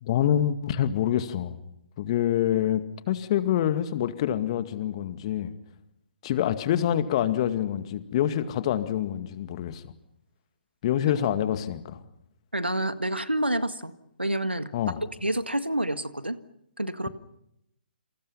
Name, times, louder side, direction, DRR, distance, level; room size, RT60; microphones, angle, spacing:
voice 1, 0.0-1.6 2.0-5.5 6.2-9.8 10.8-12.0 14.7-15.0, left 11 dB, 35° left, 10 dB, 2.1 m, -26 dB
voice 2, 12.5-13.9 14.2-14.7 15.0-16.4 16.8-17.1, right 1 dB, 90° right, 11 dB, 1.8 m, -28 dB
28.5 x 27.5 x 5.7 m, 0.81 s
figure-of-eight pair, 135°, 6 cm